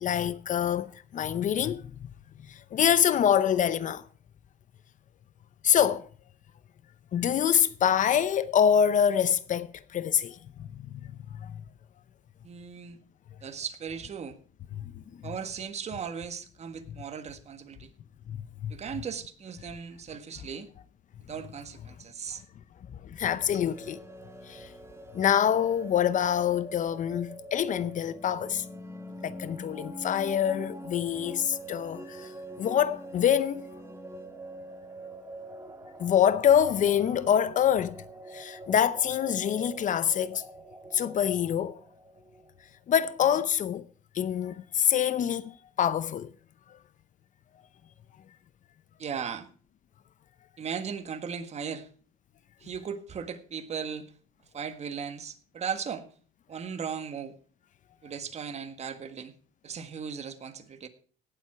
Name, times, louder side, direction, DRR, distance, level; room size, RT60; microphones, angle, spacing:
voice 1, 0.0-1.8 2.5-4.0 5.6-6.1 7.1-10.4 10.7-11.1 11.4-11.6 14.8-14.9 18.3-18.4 18.6-18.7 23.1-24.0 24.5-24.7 25.1-28.6 29.2-32.3 32.6-33.7 36.0-38.0 38.3-40.4 40.9-41.8 42.9-43.8 44.1-46.3, left 9 dB, 50° left, 0.7 m, -25 dB
voice 2, 12.4-13.0 13.4-14.4 15.2-17.9 18.7-20.7 21.3-22.4 23.5-23.6 49.0-49.5 50.6-51.9 52.6-54.1 54.5-56.1 56.5-57.3 58.0-59.3 59.6-60.9, right 6 dB, 40° right, 1.6 m, -37 dB
sound 1, 23.5-42.6, right 1 dB, 15° right, 1.7 m, -44 dB
17.5 x 7.8 x 4.6 m
cardioid pair, 110°, 17 cm